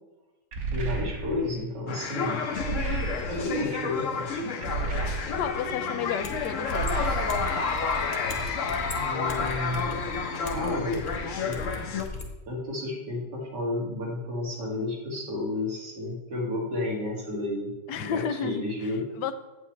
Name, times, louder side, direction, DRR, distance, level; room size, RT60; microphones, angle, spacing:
sound 1, 0.5-1.6 2.6-3.6 4.6-5.7 6.7-7.7, right 4 dB, 60° right, 1.5 m, -32 dB
voice 1, 0.7-2.5 3.3-4.4 9.0-10.0 10.4-11.0 11.4-11.6 12.5-19.1, left 2 dB, 80° right, -3 dB, 2.7 m, -32 dB
sound 2, 1.9-12.0, left 5 dB, 55° left, 1.0 m, -30 dB
voice 2, 5.3-6.9 17.9-18.6 19.2-19.3, left 8 dB, 85° left, 10 dB, 1.3 m, -31 dB
sound 3, 6.2-12.3, left 1 dB, 30° left, 1.1 m, -38 dB
8.3 x 8.3 x 3.2 m, 1.1 s
omnidirectional pair, 1.8 m